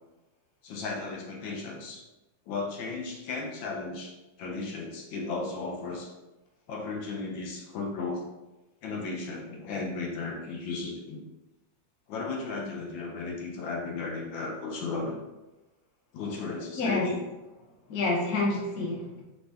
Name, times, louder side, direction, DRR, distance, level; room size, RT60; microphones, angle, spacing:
voice 1, 0.6-2.0 2.5-6.1 6.7-8.3 8.8-11.2 12.1-15.2 16.1-17.2, left 3 dB, 80° left, -1 dB, 1.4 m, -35 dB
voice 2, 16.8-17.1 17.9-19.2, left 2 dB, 55° left, -3 dB, 1.3 m, -28 dB
5.2 x 2.3 x 3.3 m, 1.1 s
omnidirectional pair, 2.1 m